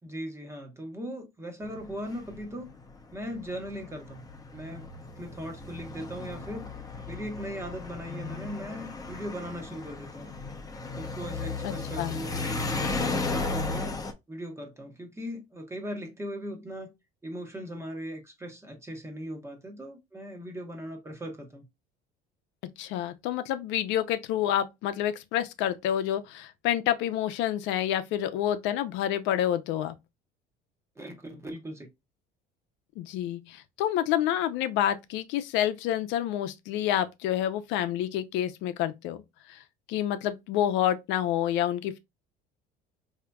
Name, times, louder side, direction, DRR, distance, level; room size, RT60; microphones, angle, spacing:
voice 1, 0.0-2.7 3.1-4.2 4.5-4.9 5.2-6.7 7.0-10.3 11.0-13.9 14.3-16.9 17.2-21.7 31.0-31.9, equal, 15° right, 1.0 m, -39 dB
sound 1, 1.6-14.1, left 3 dB, 20° left, 0.8 m, -35 dB
voice 2, 11.6-12.1 22.8-29.9 33.0-39.2 39.5-39.6 39.9-42.0, left 11 dB, 75° left, 0.6 m, -28 dB
4.9 x 2.8 x 2.3 m
cardioid pair, 125°, 19 cm